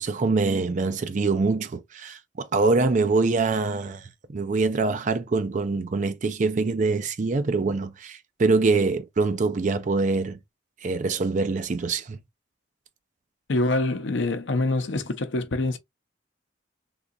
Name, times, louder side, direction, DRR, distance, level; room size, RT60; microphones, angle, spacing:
voice 1, 0.0-10.4 10.8-12.2, right 3 dB, 40° right, 0.4 m, -24 dB
voice 2, 13.5-15.8, left 2 dB, 80° left, 0.7 m, -25 dB
3.7 x 2.8 x 2.4 m
head